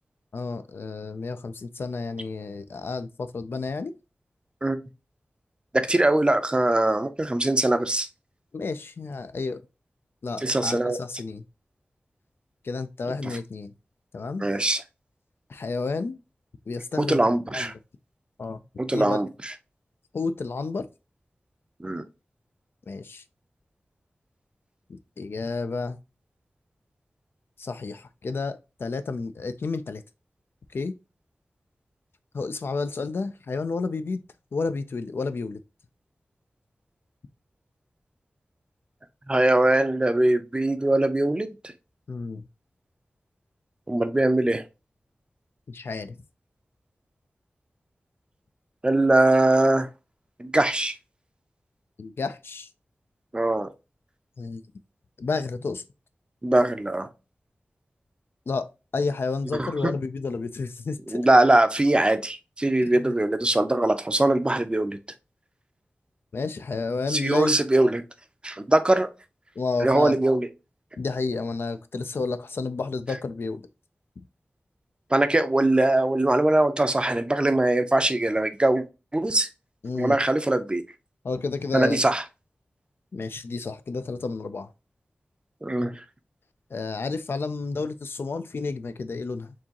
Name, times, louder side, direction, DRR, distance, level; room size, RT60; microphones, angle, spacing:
voice 1, 0.3-3.9 8.5-9.6 10.2-11.4 12.6-13.7 14.1-14.5 15.5-16.2 16.7-17.2 17.5-17.7 18.4-18.6 18.9-19.2 20.1-20.9 22.9-23.2 24.9-26.0 27.6-30.0 30.7-30.9 32.3-34.2 34.5-35.6 42.1-42.4 45.7-46.2 52.0-52.7 54.4-54.6 55.2-55.8 58.5-61.2 62.9-63.1 66.3-67.6 69.6-70.2 71.0-73.6 79.8-80.2 81.2-82.0 83.1-84.7 86.7-89.5, left 4 dB, 70° left, 0.4 m, -31 dB
voice 2, 5.7-8.1 10.4-11.0 13.2-13.3 14.4-14.8 17.0-17.7 18.8-19.5 21.8-22.0 39.3-41.5 43.9-44.6 48.8-49.9 50.4-50.9 53.3-53.7 56.4-57.1 59.5-59.9 61.1-65.0 67.1-68.0 68.4-69.1 69.8-70.5 75.1-78.8 79.1-79.5 79.9-80.8 81.7-82.2 85.6-85.9, right 1 dB, 25° right, 0.5 m, -22 dB
4.5 x 2.9 x 2.9 m
wide cardioid pair, 60°, 4 cm